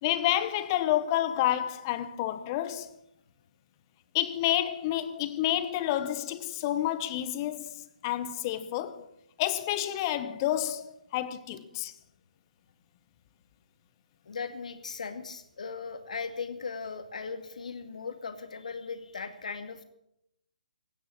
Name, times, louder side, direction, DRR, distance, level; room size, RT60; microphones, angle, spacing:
voice 1, 0.0-2.9 4.1-9.1 9.4-11.9, left 12 dB, 30° left, 1.1 m, -29 dB
voice 2, 14.3-19.8, left 5 dB, 60° left, 2.2 m, -38 dB
16.5 x 9.5 x 8.8 m
figure-of-eight pair, 140°, 4 cm